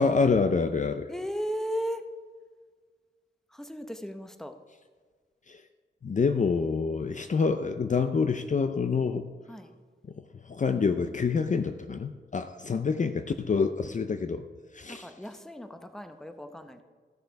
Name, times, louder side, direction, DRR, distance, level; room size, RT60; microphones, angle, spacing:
voice 1, 0.0-1.1 5.5-5.6 6.0-9.3 10.4-14.4 14.7-15.1, left 5 dB, 40° left, 9 dB, 0.5 m, -27 dB
voice 2, 1.1-2.0 3.5-4.5 9.5-9.7 14.9-16.8, equal, ahead, 7 dB, 0.7 m, -36 dB
14.0 x 6.5 x 4.7 m, 1.5 s
wide cardioid pair, 105°, 20 cm